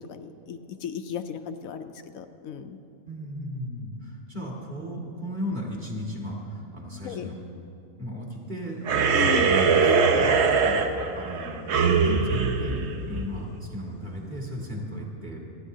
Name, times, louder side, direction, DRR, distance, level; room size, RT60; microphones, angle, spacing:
voice 1, 0.0-2.8 7.0-7.3 9.1-9.5, left 8 dB, 75° left, 8 dB, 1.0 m, -35 dB
voice 2, 3.0-7.4 8.0-10.9 11.1-15.4, equal, 30° right, -3 dB, 2.2 m, -36 dB
sound 1, 8.8-13.6, right 5 dB, 60° right, 0.9 m, -22 dB
27.0 x 9.9 x 2.7 m, 2.7 s
omnidirectional pair, 1.5 m